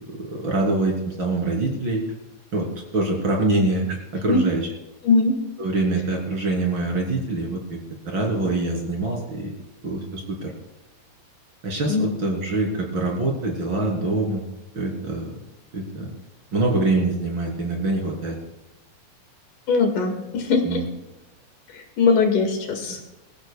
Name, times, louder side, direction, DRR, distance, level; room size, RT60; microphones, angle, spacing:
voice 1, 0.2-2.0 2.5-2.7 2.9-4.7 5.6-7.8 8.1-9.5 9.8-10.5 11.6-14.4 14.7-15.4 15.7-16.1 16.5-18.4 20.6-20.8, right 2 dB, 35° right, 0 dB, 3.6 m, -24 dB
voice 2, 5.0-5.4 11.9-12.1 19.7-20.8 21.7-23.0, left 4 dB, 70° left, 4 dB, 3.3 m, -21 dB
24.0 x 15.0 x 2.3 m, 0.96 s
omnidirectional pair, 3.9 m